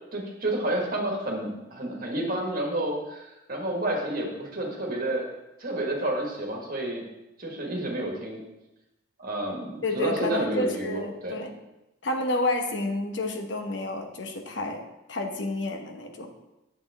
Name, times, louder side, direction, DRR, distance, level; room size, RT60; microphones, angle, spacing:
voice 1, 0.1-5.3 5.6-7.0 7.4-8.4 9.2-11.4, right 1 dB, 45° right, 0 dB, 1.7 m, -30 dB
voice 2, 9.8-11.5 12.0-14.8 15.1-16.3, left 2 dB, 60° left, 4 dB, 1.0 m, -30 dB
8.8 x 7.2 x 3.6 m, 0.97 s
head